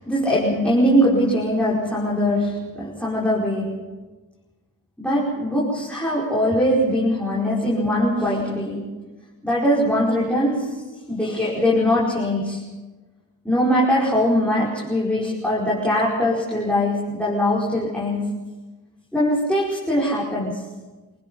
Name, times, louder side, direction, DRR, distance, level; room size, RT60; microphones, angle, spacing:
voice 1, 0.0-3.9 5.0-8.9 9.4-10.8 11.1-12.6 13.5-18.4 19.1-20.7, equal, 5° left, -7 dB, 5.3 m, -21 dB
26.0 x 19.0 x 5.7 m, 1.2 s
wide cardioid pair, 50°, 38 cm